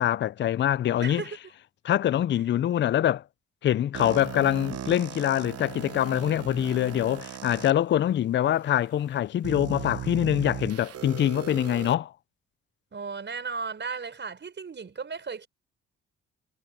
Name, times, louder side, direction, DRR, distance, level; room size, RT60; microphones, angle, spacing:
voice 1, 0.0-1.2 1.8-3.2 3.6-12.1, left 11 dB, 40° left, 0.4 m, -24 dB
voice 2, 1.0-1.4 12.9-15.5, right 5 dB, 35° right, 5.6 m, -35 dB
sound 1, 3.9-7.7 8.4-8.5 9.4-11.9, right 10 dB, 55° right, 1.0 m, -37 dB
cardioid pair, 90°, 30 cm